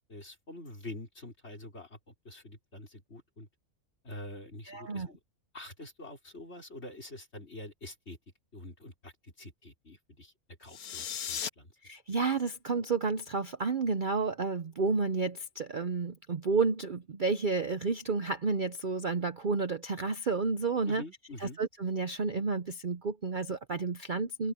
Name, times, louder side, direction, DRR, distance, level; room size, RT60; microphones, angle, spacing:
voice 1, 0.1-3.5 4.0-5.2 5.5-8.2 8.5-10.3 10.6-11.7 20.9-21.6, left 1 dB, 45° left, 5.1 m, -46 dB
voice 2, 4.7-5.1 11.8-21.0 21.4-24.5, right 4 dB, 45° right, 0.8 m, -31 dB
sound 1, 10.6-11.5, left 8 dB, 90° left, 1.6 m, -36 dB
open air
omnidirectional pair, 1.5 m